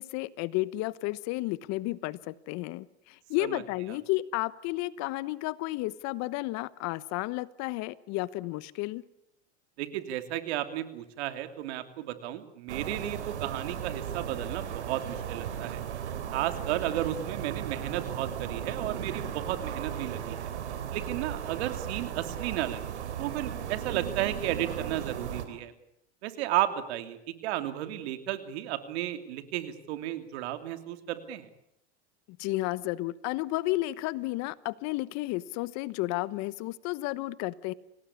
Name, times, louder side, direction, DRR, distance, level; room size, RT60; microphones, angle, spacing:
voice 1, 0.0-9.0 32.3-37.7, left 18 dB, 55° left, 19 dB, 1.1 m, -32 dB
voice 2, 9.8-15.8 16.3-20.5 20.9-25.7 26.2-31.5, right 13 dB, 70° right, 9 dB, 2.9 m, -33 dB
sound 1, 12.7-25.5, right 9 dB, 90° right, 3.3 m, -36 dB
27.5 x 18.5 x 8.5 m, 0.78 s
hypercardioid pair, 110°, 33 cm